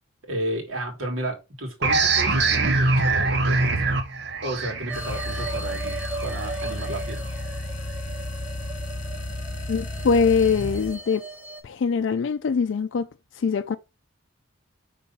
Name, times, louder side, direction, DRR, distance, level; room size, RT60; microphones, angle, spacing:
voice 1, 0.2-3.8 4.4-7.2, right 1 dB, 85° right, 1.9 m, -32 dB
sound 1, 1.8-7.1, right 3 dB, 55° right, 0.9 m, -24 dB
sound 2, 4.9-11.0, left 1 dB, 40° left, 1.5 m, -33 dB
sound 3, 4.9-11.6, right 2 dB, 5° right, 0.8 m, -37 dB
voice 2, 9.7-11.2 11.6-13.1 13.3-13.8, left 5 dB, 65° left, 0.4 m, -23 dB
5.4 x 3.3 x 5.4 m
head